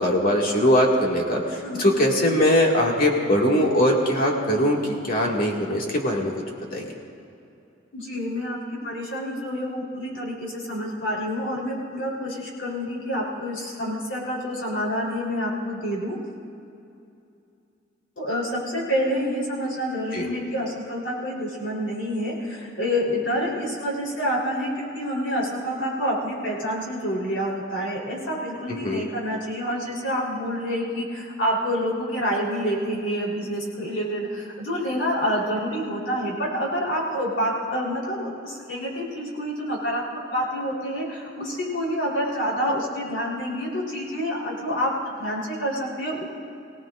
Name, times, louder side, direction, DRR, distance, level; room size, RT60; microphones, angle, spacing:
voice 1, 0.0-6.3 6.7-6.8 20.1-20.3 28.8-29.1, equal, 50° left, -1 dB, 2.1 m, -21 dB
voice 2, 7.9-8.6 8.8-16.2 18.2-46.3, equal, 65° left, -4 dB, 3.9 m, -28 dB
24.0 x 17.5 x 2.6 m, 2.6 s
head